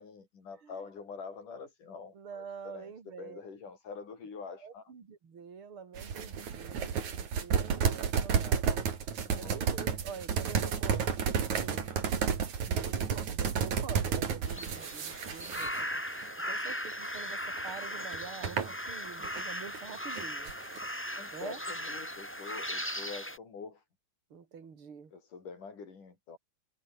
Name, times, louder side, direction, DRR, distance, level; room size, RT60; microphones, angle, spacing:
voice 1, 0.0-4.9 7.6-7.8 9.1-9.6 11.7-12.0 16.4-16.6 21.2-23.8 25.1-26.4, left 5 dB, 90° left, 6.5 m, -46 dB
voice 2, 2.1-3.4 4.6-8.9 9.4-12.0 12.7-16.0 16.5-20.5 21.3-21.6 24.3-25.1, right 6 dB, 45° right, 3.8 m, -46 dB
sound 1, 6.0-16.2 16.7-16.9 17.6-19.4 19.7-20.9, right 7 dB, 70° right, 4.2 m, -31 dB
sound 2, 14.5-23.4, equal, 5° left, 7.8 m, -38 dB
omnidirectional pair, 3.5 m